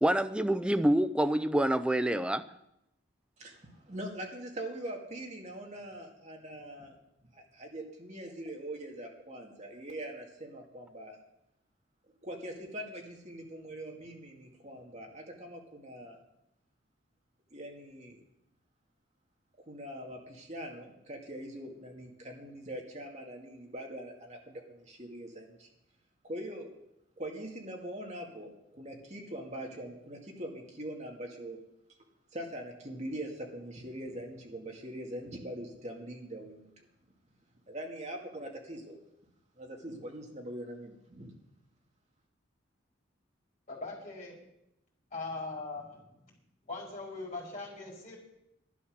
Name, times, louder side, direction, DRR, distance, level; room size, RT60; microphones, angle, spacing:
voice 1, 0.0-2.5, right 1 dB, 5° right, 11 dB, 0.5 m, -27 dB
voice 2, 3.4-7.0 7.3-11.2 12.2-16.2 17.5-18.2 19.6-25.7 26.2-26.7 27.2-31.6 32.3-36.9 37.7-39.0 39.6-41.3, right 1 dB, 35° right, 1 dB, 2.2 m, -42 dB
voice 3, 43.7-44.4 45.1-46.0 46.6-48.2, left 3 dB, 35° left, -2 dB, 4.6 m, -40 dB
11.5 x 11.0 x 6.5 m, 0.83 s
head